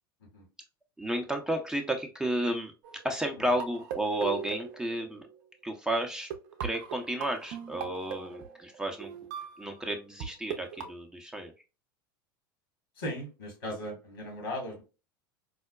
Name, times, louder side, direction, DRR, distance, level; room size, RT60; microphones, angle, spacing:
voice 1, 1.0-2.7 3.0-5.3 5.6-6.3 6.6-9.1 9.6-11.5, right 1 dB, 5° right, 3 dB, 0.6 m, -32 dB
sound 1, 2.8-5.3 6.0-6.1 6.3-10.3 10.5-10.9, right 8 dB, 55° right, 0.6 m, -39 dB
voice 2, 13.0-14.8, equal, 75° left, 2 dB, 1.7 m, -37 dB
4.7 x 2.1 x 2.2 m, 0.30 s
figure-of-eight pair, 80°, 12 cm